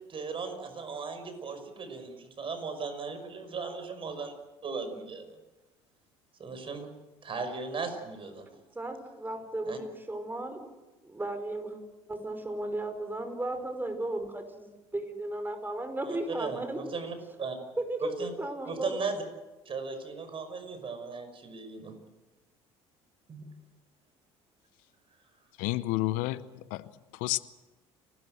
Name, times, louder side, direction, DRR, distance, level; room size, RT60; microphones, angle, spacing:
voice 1, 0.1-4.3 4.6-5.3 6.4-6.9 7.2-8.5 9.7-9.8 16.1-17.6 18.2-18.3 18.7-19.2 19.7-21.9 23.3-23.4, right 4 dB, 40° right, 5.7 m, -37 dB
voice 2, 8.5-10.6 11.0-11.8 12.1-16.8 17.8-19.0, right 2 dB, 15° right, 5.2 m, -35 dB
voice 3, 25.6-26.4 26.7-27.4, left 18 dB, 70° left, 0.7 m, -30 dB
30.0 x 13.0 x 7.8 m
hypercardioid pair, 70°, 14 cm